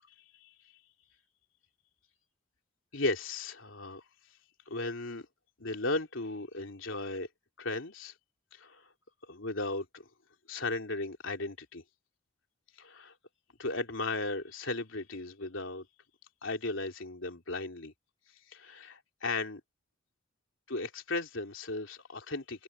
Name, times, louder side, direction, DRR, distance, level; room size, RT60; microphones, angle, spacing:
voice 1, 2.9-4.0 4.7-5.3 5.6-7.3 7.6-8.1 8.5-8.8 9.3-10.1 10.5-11.8 12.8-13.1 13.6-15.9 16.4-17.9 18.5-19.6 20.7-22.6, left 2 dB, 70° left, 3.6 m, -36 dB
head